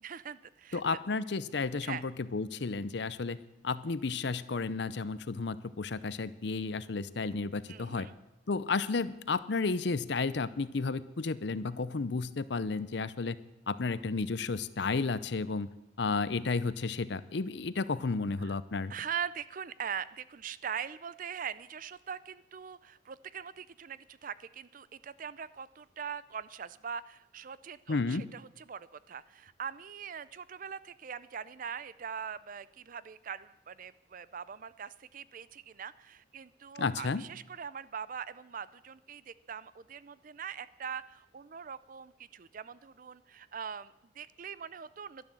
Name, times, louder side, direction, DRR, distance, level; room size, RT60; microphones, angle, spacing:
voice 1, 0.0-1.0 1.8-2.0 7.7-8.1 18.4-18.5 18.9-45.3, right 7 dB, 45° right, 17 dB, 0.4 m, -42 dB
voice 2, 0.7-3.4 3.6-8.1 8.5-13.4 13.7-15.7 16.0-18.9 27.9-28.3 36.8-37.2, left 4 dB, 60° left, 16 dB, 0.6 m, -32 dB
12.0 x 11.0 x 7.6 m, 0.92 s
head